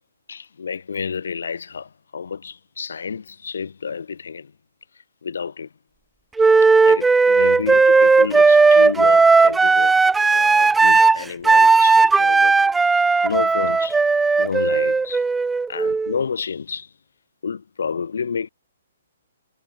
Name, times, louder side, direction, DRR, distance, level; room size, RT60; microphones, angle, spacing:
voice 1, 0.3-4.5 5.2-5.7 6.9-10.0 10.3-12.5 13.2-14.0 14.4-15.2 15.7-16.9 17.4-18.5, left 6 dB, 65° left, 2.7 m, -30 dB
Wind instrument woodwind instrument, 6.4-16.2, right 4 dB, 5° right, 0.4 m, -15 dB
figure-of-eight pair, 125°, 0 cm